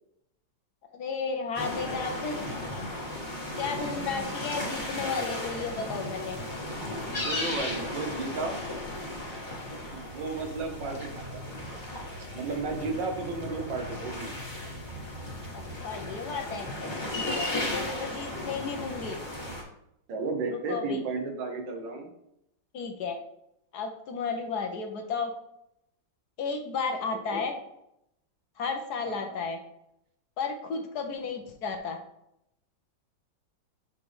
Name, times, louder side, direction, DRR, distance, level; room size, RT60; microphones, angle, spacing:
voice 1, 0.9-2.4 3.6-6.4 15.5-16.7 17.1-19.2 20.5-21.0 22.7-23.2 23.7-25.3 26.4-27.5 28.6-29.6 30.4-32.0, left 5 dB, 65° left, 4 dB, 1.2 m, -33 dB
sound 1, 1.5-19.6, left 1 dB, 25° left, 2.1 m, -35 dB
voice 2, 3.7-4.3 7.1-8.6 9.9-11.8 12.3-14.3 17.5-18.0 20.1-22.1 26.8-27.0 27.3-27.5 29.1-29.4, right 3 dB, 75° right, 3 dB, 1.8 m, -34 dB
7.2 x 5.2 x 3.2 m, 0.80 s
omnidirectional pair, 2.0 m